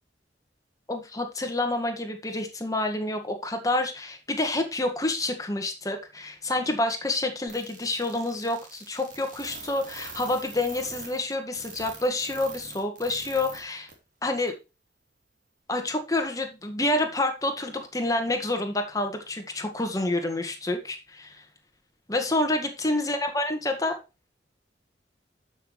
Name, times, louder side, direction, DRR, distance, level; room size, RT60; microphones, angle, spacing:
voice 1, 0.9-13.9 14.2-14.5 15.7-21.4 22.1-24.0, left 2 dB, 20° left, 5 dB, 1.8 m, -28 dB
sound 1, 7.5-13.6 13.9-14.0 14.5-14.6, right 4 dB, 45° right, 3.1 m, -42 dB
12.5 x 6.2 x 3.2 m, 0.28 s
head